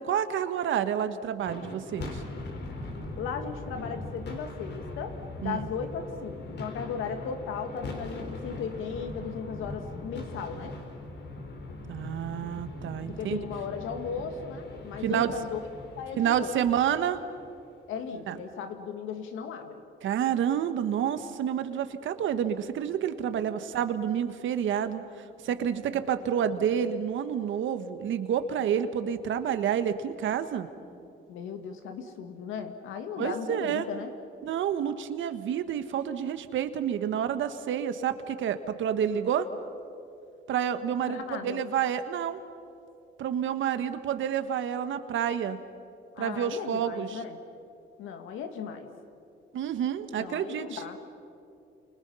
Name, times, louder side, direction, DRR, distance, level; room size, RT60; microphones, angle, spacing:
voice 1, 0.0-2.2 5.4-5.7 11.9-13.4 15.0-15.3 16.2-17.2 18.3-18.4 20.0-30.7 33.2-33.9 34.4-39.5 40.5-42.4 43.2-45.6 46.2-47.2 49.5-50.8, right 9 dB, 75° right, 10 dB, 1.5 m, -29 dB
sound 1, 1.4-17.8, left 2 dB, 60° left, 4.3 m, -41 dB
voice 2, 3.2-10.8 13.1-15.6 16.0-16.6 17.9-19.8 25.9-26.2 31.3-34.1 41.1-41.6 46.2-47.4 48.0-48.9 50.2-51.0, left 6 dB, 90° left, 6 dB, 2.3 m, -36 dB
29.5 x 28.5 x 5.7 m, 2.6 s
cardioid pair, 90°, 20 cm